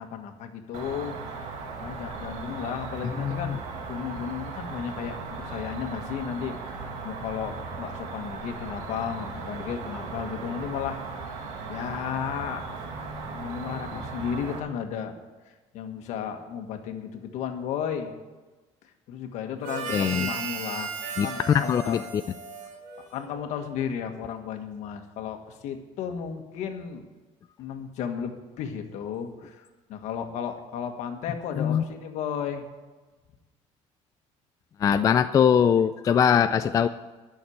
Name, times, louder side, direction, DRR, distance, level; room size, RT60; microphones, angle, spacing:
voice 1, 0.0-11.0 11.7-12.8 13.3-15.2 15.5-18.1 19.1-20.9 21.2-22.0 23.1-27.1 27.6-32.6 36.3-36.6, left 8 dB, 65° left, 5 dB, 1.5 m, -34 dB
Cricket, 0.7-14.6, right 4 dB, 70° right, 2.1 m, -37 dB
voice 2, 3.2-3.6 19.9-20.3 21.2-21.3 21.5-22.0 31.6-31.8 34.8-36.9, left 8 dB, 25° left, 9 dB, 0.3 m, -22 dB
Harmonica, 19.6-23.4, right 5 dB, 85° right, 2.2 m, -35 dB
11.5 x 6.5 x 9.3 m, 1.2 s
cardioid pair, 150°, 13 cm